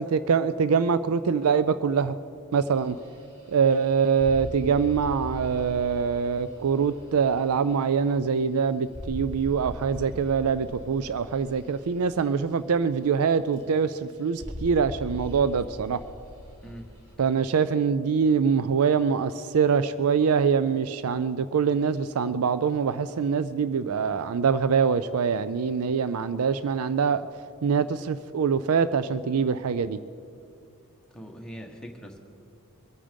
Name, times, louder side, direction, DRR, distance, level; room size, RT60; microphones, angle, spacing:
voice 1, 0.0-2.1 2.5-3.0 3.5-16.0 17.2-27.3 27.6-30.0, right 6 dB, 80° right, 14 dB, 0.4 m, -24 dB
sound 1, 2.7-13.2 13.5-14.0 14.3-17.1, left 1 dB, 30° right, 3.9 m, -41 dB
voice 2, 31.1-32.2, equal, 5° left, 1 dB, 1.4 m, -41 dB
23.0 x 8.9 x 5.2 m, 2.3 s
head